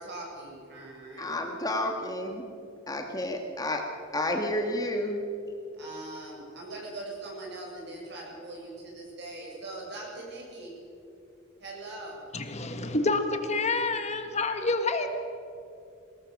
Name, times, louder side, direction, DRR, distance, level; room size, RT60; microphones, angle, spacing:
voice 1, 0.0-1.4 5.8-10.7 11.6-12.2, right 2 dB, 60° right, -2 dB, 6.9 m, -41 dB
voice 2, 1.2-2.5 2.9-3.8 4.1-5.2, left 1 dB, 20° left, 3 dB, 1.7 m, -30 dB
voice 3, 12.3-15.2, left 3 dB, 35° left, 7 dB, 1.3 m, -28 dB
22.0 x 18.5 x 6.5 m, 2.6 s
head